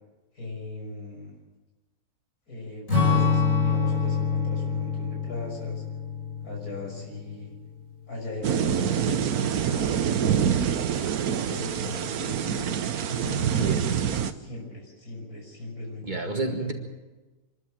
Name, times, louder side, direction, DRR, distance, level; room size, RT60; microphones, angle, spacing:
voice 1, 0.3-1.4 2.5-5.8 6.4-7.5 8.1-10.5 11.5-12.7 13.1-14.0 14.3-16.7, left 2 dB, 90° left, 0 dB, 6.5 m, -39 dB
Strum, 2.9-7.5, left 5 dB, 60° left, 6.6 m, -26 dB
sound 1, 8.4-14.3, right 8 dB, 85° right, 1.4 m, -26 dB
voice 2, 16.0-16.7, right 3 dB, 30° right, 3 dB, 2.0 m, -29 dB
26.0 x 12.5 x 8.9 m, 1.2 s
omnidirectional pair, 1.5 m